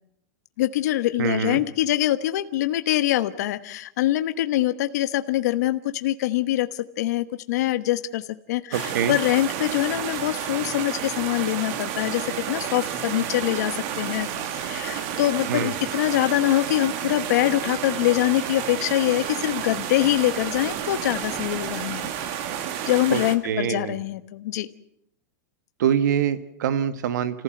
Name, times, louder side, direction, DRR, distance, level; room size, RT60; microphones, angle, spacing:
voice 1, 0.6-14.3 14.5-22.3 22.9-24.7, left 15 dB, 65° left, 10 dB, 1.2 m, -24 dB
voice 2, 1.2-1.6 8.7-9.2 15.5-15.7 23.1-24.0 25.8-27.4, right 8 dB, 80° right, 11 dB, 1.5 m, -25 dB
sound 1, 8.7-23.4, right 9 dB, 45° right, 2.0 m, -31 dB
29.5 x 15.5 x 7.9 m, 0.74 s
supercardioid pair, 160°, 10 cm